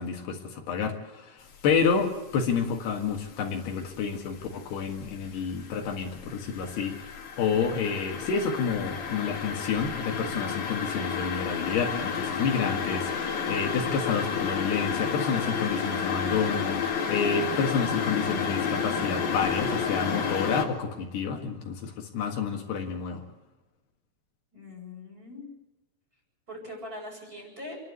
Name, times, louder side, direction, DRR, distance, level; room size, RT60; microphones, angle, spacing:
voice 1, 0.0-23.2, left 6 dB, 75° left, 2 dB, 3.8 m, -29 dB
sound 1, 1.6-2.0 2.3-3.9 4.3-20.6, left 6 dB, 50° left, 3.3 m, -31 dB
voice 2, 24.5-25.5 26.5-27.8, left 1 dB, 20° right, -1 dB, 7.5 m, -41 dB
29.0 x 11.5 x 8.2 m, 1.0 s
omnidirectional pair, 4.9 m